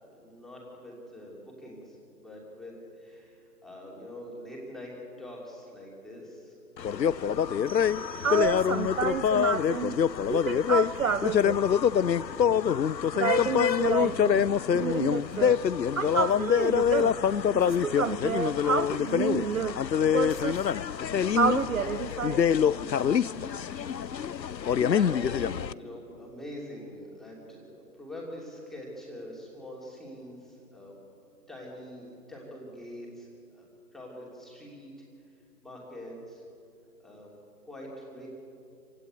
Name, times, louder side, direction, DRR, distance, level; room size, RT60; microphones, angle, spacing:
voice 1, 0.0-2.0 2.2-4.9 5.2-6.5 24.9-31.0 31.5-34.9 35.6-36.4 37.0-37.3 37.6-38.3, equal, ahead, -4 dB, 2.8 m, -44 dB
sound 1, 6.8-25.7, left 8 dB, 90° left, 0.7 m, -25 dB
sound 2, 7.7-9.2, right 5 dB, 75° right, 2.6 m, -49 dB
voice 2, 8.2-10.0 10.3-11.8 13.1-14.5 14.7-15.6 16.0-17.2 17.5-19.8 20.1-20.6 21.3-22.4, right 6 dB, 55° right, 15 dB, 0.7 m, -29 dB
27.0 x 16.5 x 9.3 m, 2.6 s
figure-of-eight pair, 150°, 49 cm